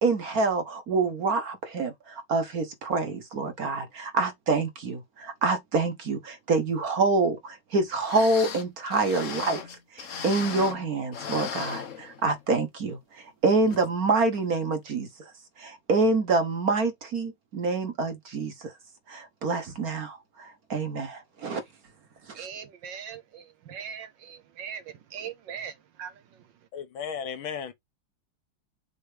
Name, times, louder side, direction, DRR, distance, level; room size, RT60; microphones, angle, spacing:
voice 1, 0.0-9.6 9.9-15.1 15.6-18.7 19.1-21.6 22.4-22.5, right 3 dB, 50° right, 1.5 m, -27 dB
sound 1, 7.7-7.8 8.0-10.9 11.1-12.5 12.9-13.0 13.7-13.9 14.3-14.4, left 7 dB, 50° left, 1.1 m, -37 dB
voice 2, 22.3-26.5, right 7 dB, 70° right, 1.3 m, -40 dB
voice 3, 26.7-27.7, left 7 dB, 75° left, 1.9 m, -34 dB
6.7 x 3.0 x 4.9 m
omnidirectional pair, 2.3 m